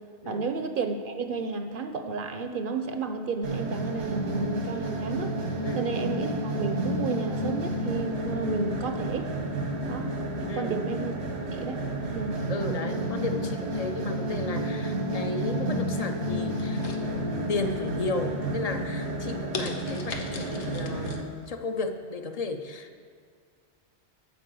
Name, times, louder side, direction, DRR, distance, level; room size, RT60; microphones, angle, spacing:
voice 1, 0.3-5.3 5.7-9.3 9.9-10.1 10.5-11.2 11.5-11.8 12.1-12.4, right 4 dB, 55° right, 7 dB, 0.7 m, -32 dB
sound 1, 3.4-21.2, right 1 dB, 90° right, 1.5 m, -31 dB
voice 2, 10.5-10.8 12.5-23.0, left 3 dB, 45° left, 7 dB, 0.6 m, -34 dB
sound 2, 16.6-17.6 18.0-18.4 18.9-19.0 19.5-21.2 21.6-21.7, left 4 dB, 90° left, 1.1 m, -38 dB
11.5 x 4.6 x 7.6 m, 2.1 s
omnidirectional pair, 1.1 m